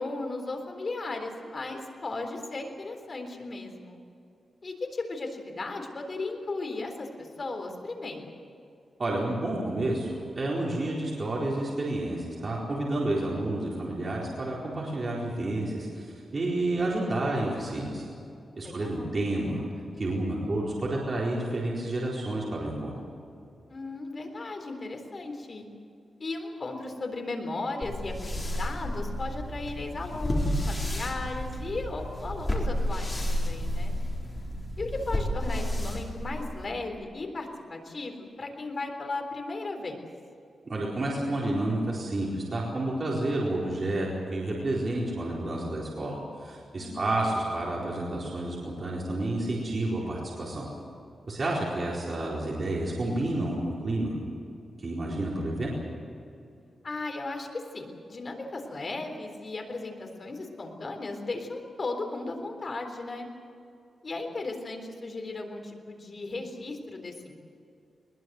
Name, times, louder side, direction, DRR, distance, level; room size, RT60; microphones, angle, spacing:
voice 1, 0.0-4.0 4.6-8.3 18.6-19.1 23.7-25.7 26.2-34.0 34.8-40.1 46.8-47.1 56.8-63.3 64.0-67.3, left 2 dB, 35° left, 3 dB, 3.8 m, -36 dB
voice 2, 9.0-18.0 18.6-19.6 20.0-22.9 40.6-50.7 51.3-54.2 54.8-55.7, right 1 dB, 35° right, -4 dB, 4.4 m, -30 dB
sound 1, 27.8-36.7, left 1 dB, 20° left, 4.0 m, -31 dB
21.5 x 21.0 x 8.0 m, 2.6 s
wide cardioid pair, 140°, 0 cm